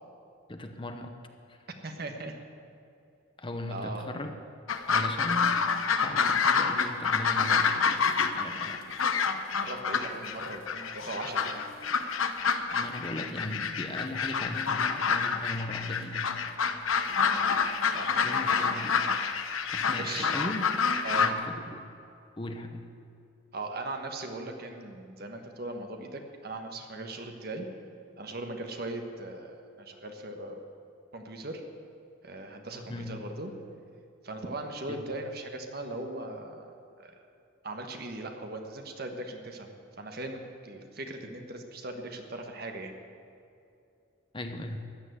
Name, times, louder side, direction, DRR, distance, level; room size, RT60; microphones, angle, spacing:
voice 1, 0.5-1.2 1.5-1.7 3.4-4.4 4.9-5.6 6.0-8.1 8.3-8.9 12.7-16.3 18.2-19.1 19.7-20.6 21.2-21.9 22.4-22.9 32.9-33.3 34.9-35.1 44.3-44.8, left 1 dB, 25° left, 6 dB, 0.9 m, -38 dB
voice 2, 1.8-2.3 3.7-4.1 9.4-11.7 17.1-17.4 17.9-18.2 20.0-20.4 21.0-21.3 23.5-27.7 28.2-30.6 31.1-31.6 32.2-33.5 34.2-37.2 37.6-39.7 40.0-42.9, right 2 dB, 50° right, 4 dB, 1.4 m, -39 dB
sound 1, 4.7-21.3, left 5 dB, 90° left, 0.9 m, -28 dB
14.5 x 10.0 x 8.2 m, 2.6 s
head